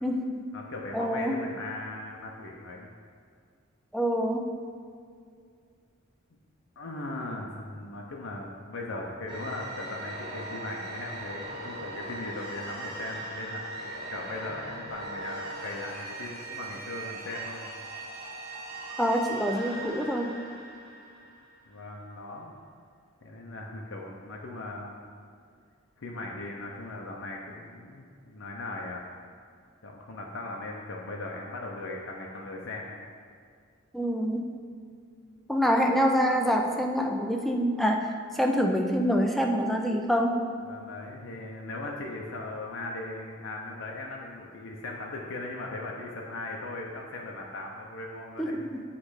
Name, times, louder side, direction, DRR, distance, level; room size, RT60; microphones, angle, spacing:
voice 1, 0.0-0.5 0.9-1.4 3.9-4.5 19.0-20.3 33.9-34.5 35.5-40.4 48.4-48.8, equal, ahead, 2 dB, 0.4 m, -26 dB
voice 2, 0.5-2.9 6.8-13.8 14.1-17.8 21.7-22.6 23.2-25.1 26.0-29.0 29.8-33.0 40.6-48.6, left 2 dB, 65° left, -1 dB, 0.7 m, -38 dB
sound 1, 9.3-21.8, right 2 dB, 25° right, 1.0 m, -40 dB
8.3 x 3.2 x 4.9 m, 2.2 s
head